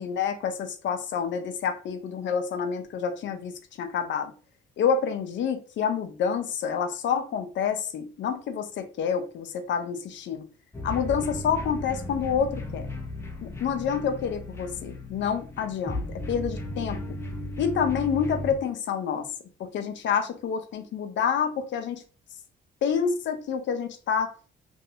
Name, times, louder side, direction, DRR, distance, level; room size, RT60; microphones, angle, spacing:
voice 1, 0.0-4.3 4.8-10.5 10.8-12.9 13.4-17.0 17.6-19.3 19.6-22.0 22.8-24.3, left 7 dB, 65° left, 0.6 m, -28 dB
sound 1, 10.7-18.5, left 1 dB, 15° left, 0.6 m, -35 dB
3.1 x 2.7 x 2.7 m
cardioid pair, 90°, 20 cm